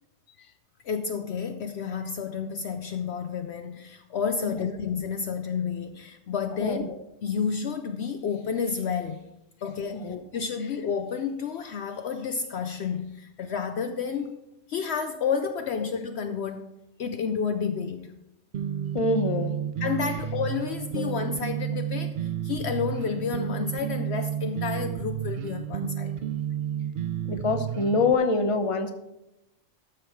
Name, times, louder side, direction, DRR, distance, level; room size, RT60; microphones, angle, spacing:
voice 1, 0.8-6.9 7.2-9.2 9.6-14.4 14.7-16.7 17.0-18.2 19.8-26.1, left 6 dB, 65° left, 0.8 m, -30 dB
voice 2, 6.6-7.0 9.9-10.2 18.9-19.6 21.0-21.1 27.2-28.9, left 3 dB, 30° left, 0.8 m, -25 dB
sound 1, 18.5-28.1, right 9 dB, 60° right, 0.5 m, -31 dB
12.5 x 6.5 x 4.6 m
omnidirectional pair, 1.3 m